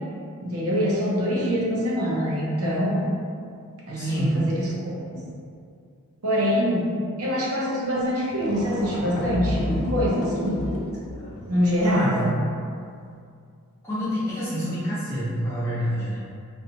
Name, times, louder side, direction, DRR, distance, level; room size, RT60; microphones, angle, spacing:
voice 1, 0.4-3.1 3.9-5.3 6.2-6.9 7.2-10.6 11.5-12.3, equal, 75° right, -5 dB, 0.6 m, -24 dB
voice 2, 4.0-4.4 11.8-12.4 13.8-16.2, equal, 10° left, -12 dB, 0.8 m, -27 dB
sound 1, 8.0-8.1 8.3-12.1, left 1 dB, 80° left, 0.4 m, -31 dB
2.5 x 2.3 x 2.8 m, 2.3 s
head